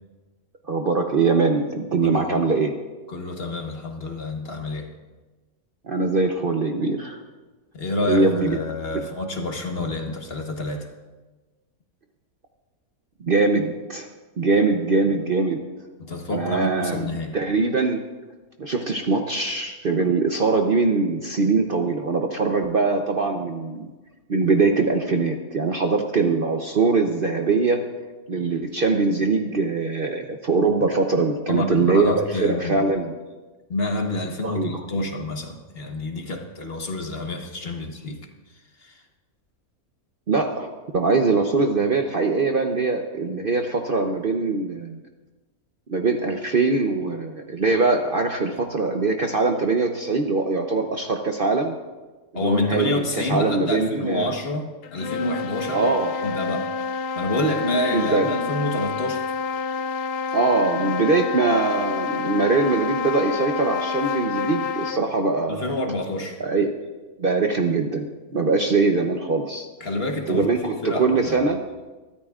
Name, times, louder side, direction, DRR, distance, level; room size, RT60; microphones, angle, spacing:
voice 1, 0.7-2.8 5.9-7.2 8.1-8.6 13.2-14.1 14.4-15.6 16.3-17.0 17.3-18.0 18.6-23.9 24.3-27.8 28.3-33.1 34.4-34.7 40.3-45.0 45.9-51.7 52.3-54.3 55.7-56.1 57.9-58.3 60.3-65.7 66.4-66.7 67.2-69.7 70.3-71.6, right 3 dB, 45° right, 3 dB, 0.8 m, -22 dB
voice 2, 2.0-2.4 3.1-4.9 7.7-10.9 16.0-17.3 31.5-32.8 33.7-38.2 38.8-39.0 48.5-48.6 52.3-55.9 56.2-56.7 57.1-59.3 65.5-66.4 69.8-71.5, left 2 dB, 45° left, 3 dB, 1.4 m, -28 dB
sound 1, 54.8-65.1, left 5 dB, 90° left, 0.5 m, -28 dB
22.5 x 13.0 x 2.4 m, 1.2 s
omnidirectional pair, 1.5 m